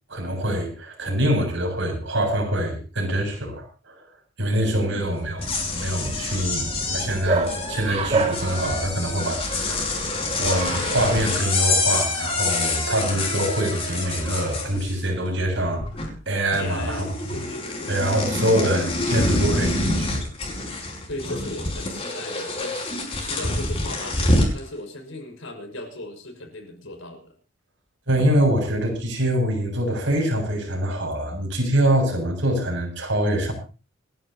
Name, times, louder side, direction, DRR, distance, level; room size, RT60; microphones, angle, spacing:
voice 1, 0.1-4.0 4.4-5.5 5.7-9.9 10.4-15.8 16.3-17.1 17.3-17.4 17.9-20.2 20.8-20.9 28.1-33.5, right 1 dB, 65° right, 1 dB, 7.6 m, -24 dB
voice 2, 4.7-5.2 16.6-17.9 18.3-18.5 21.1-27.3, left 2 dB, 75° left, 3 dB, 5.7 m, -37 dB
sound 1, 5.2-15.3 15.6-16.3 16.5-24.6, left 2 dB, 30° left, 5.2 m, -27 dB
Bark, 5.4-11.3, right 3 dB, 30° right, 2.2 m, -30 dB
29.0 x 11.5 x 2.9 m, 0.35 s
head